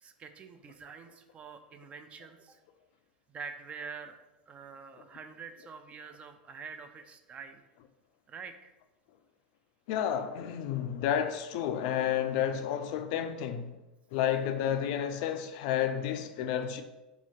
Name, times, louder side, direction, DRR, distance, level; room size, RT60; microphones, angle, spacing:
voice 1, 0.0-2.6 3.3-4.2 4.5-7.6 8.3-8.7, right 5 dB, 25° right, 0.3 m, -46 dB
voice 2, 9.9-13.8 14.1-16.8, left 9 dB, 55° left, 0.3 m, -31 dB
2.8 x 2.4 x 4.2 m
figure-of-eight pair, 90°, 5 cm